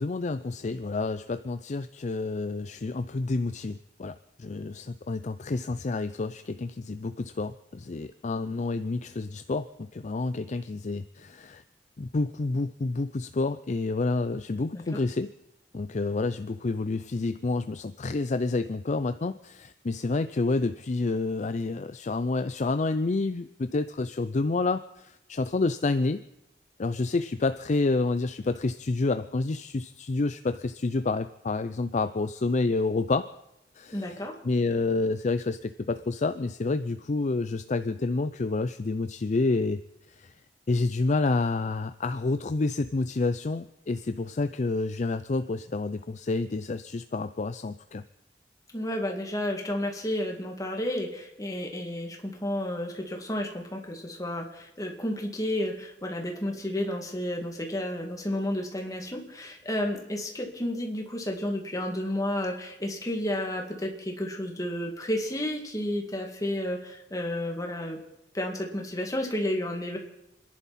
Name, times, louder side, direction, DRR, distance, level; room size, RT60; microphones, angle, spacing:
voice 1, 0.0-4.1 4.4-11.6 12.0-15.3 15.7-26.2 26.8-33.3 33.8-39.8 40.2-40.3 40.7-48.0, left 3 dB, 45° left, 11 dB, 0.5 m, -29 dB
voice 2, 33.9-34.4 48.7-68.0 68.3-70.0, left 1 dB, 20° left, 1 dB, 2.3 m, -31 dB
29.0 x 11.0 x 4.3 m, 0.87 s
head